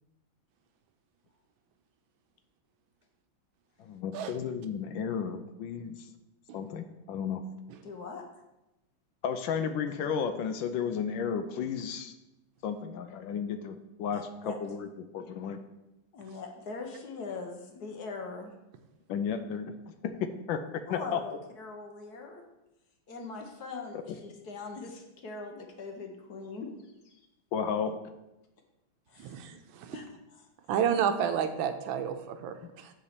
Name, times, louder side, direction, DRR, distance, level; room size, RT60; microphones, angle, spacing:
voice 1, 3.8-6.1 6.5-7.4 9.2-12.1 12.6-15.6 19.1-19.7 20.0-20.6 20.9-21.2 23.9-24.0 27.5-28.0, left 7 dB, 80° left, 8 dB, 1.3 m, -33 dB
voice 2, 7.8-8.2 14.1-14.5 16.1-18.5 20.9-22.4 23.1-26.7 29.1-29.3 29.9-30.0, left 4 dB, 60° left, 3 dB, 1.4 m, -41 dB
voice 3, 29.2-30.1 30.7-32.9, right 8 dB, 80° right, 8 dB, 1.4 m, -31 dB
7.0 x 4.3 x 6.6 m, 0.96 s
omnidirectional pair, 2.2 m